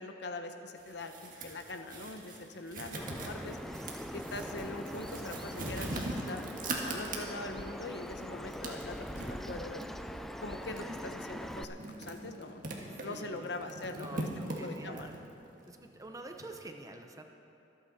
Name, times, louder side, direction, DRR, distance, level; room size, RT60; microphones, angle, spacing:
voice 1, 0.0-3.6 4.1-6.4 6.8-9.9 10.4-12.6 13.0-14.3 14.6-15.1, left 2 dB, 65° left, 6 dB, 1.0 m, -42 dB
sound 1, 0.8-7.6 8.1-16.6, right 2 dB, 50° right, 1.7 m, -42 dB
Bird vocalization bird call bird song, 3.0-11.6, equal, ahead, 0.4 m, -42 dB
voice 2, 12.8-15.2 15.7-17.2, right 2 dB, 20° right, 4 dB, 0.8 m, -48 dB
24.5 x 8.9 x 4.2 m, 2.8 s
head